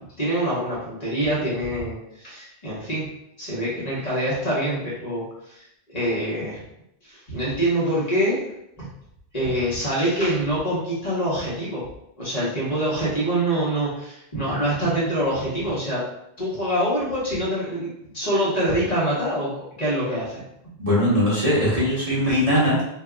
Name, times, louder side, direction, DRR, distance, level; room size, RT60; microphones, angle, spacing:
voice 1, 0.2-3.1 3.4-5.6 5.9-6.6 7.0-8.4 8.8-8.9 9.3-11.8 12.2-16.0 16.4-17.9 18.1-20.4, right 1 dB, 40° left, -8 dB, 1.2 m, -25 dB
voice 2, 20.8-22.9, equal, 35° right, -8 dB, 0.9 m, -20 dB
3.6 x 2.8 x 2.3 m, 0.80 s
omnidirectional pair, 1.1 m